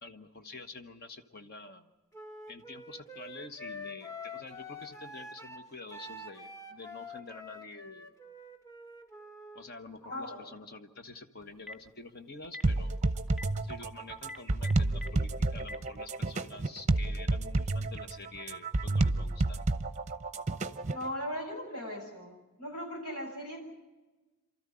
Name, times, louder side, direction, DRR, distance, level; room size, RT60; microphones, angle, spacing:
voice 1, 0.0-1.9 2.5-8.1 9.5-12.9 13.6-19.6, left 3 dB, 45° left, 8 dB, 1.3 m, -47 dB
Wind instrument woodwind instrument, 2.1-9.6, left 2 dB, 15° left, 1.5 m, -46 dB
voice 2, 10.0-10.4 20.9-23.6, equal, 85° left, 1 dB, 7.5 m, -38 dB
Telephone, 11.4-11.9 12.4-12.7 13.3-13.4 14.2-15.1 15.6-15.8, left 2 dB, ahead, 0.8 m, -42 dB
sound 1, 12.6-21.1, right 2 dB, 30° right, 0.7 m, -30 dB
28.5 x 13.5 x 9.9 m, 1.2 s
head